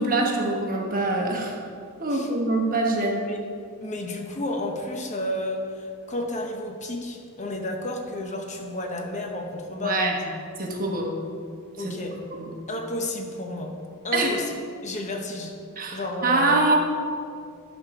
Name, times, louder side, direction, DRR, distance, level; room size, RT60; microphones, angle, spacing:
voice 1, 0.0-1.6 2.0-3.2 9.8-10.2 10.6-11.2 11.8-11.9 12.3-12.5 14.1-14.4 15.8-16.8, right 2 dB, 40° right, 0 dB, 1.1 m, -24 dB
voice 2, 3.0-3.4 3.8-10.0 11.8-12.2 12.7-13.8 14.0-14.5 14.8-15.5 15.9-16.7, left 1 dB, 35° left, 3 dB, 0.9 m, -31 dB
9.9 x 4.3 x 6.0 m, 2.2 s
head